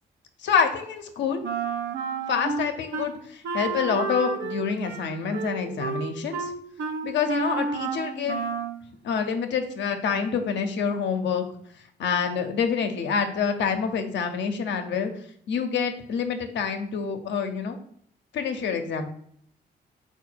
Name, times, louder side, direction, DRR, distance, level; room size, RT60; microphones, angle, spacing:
voice 1, 0.4-1.4 2.3-6.5 7.0-8.4 9.0-11.4 12.0-15.1 15.5-17.8 18.3-19.1, left 6 dB, 75° left, 6 dB, 0.5 m, -27 dB
Wind instrument woodwind instrument, 1.4-3.1 3.4-8.8, right 4 dB, 80° right, 0.6 m, -31 dB
3.8 x 2.3 x 4.4 m, 0.65 s
cardioid pair, 75°, 19 cm